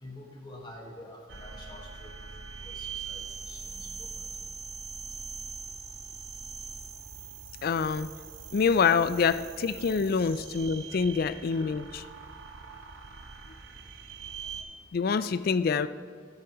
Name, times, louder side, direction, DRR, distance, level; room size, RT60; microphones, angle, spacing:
voice 1, 0.0-2.1 2.6-4.3, left 1 dB, 25° left, -1 dB, 1.7 m, -47 dB
sound 1, 1.3-14.6, right 5 dB, 70° right, 0.9 m, -42 dB
voice 2, 7.6-8.1 8.5-12.0 14.9-15.9, left 5 dB, 50° left, 14 dB, 0.3 m, -26 dB
16.5 x 8.0 x 3.1 m, 2.1 s
head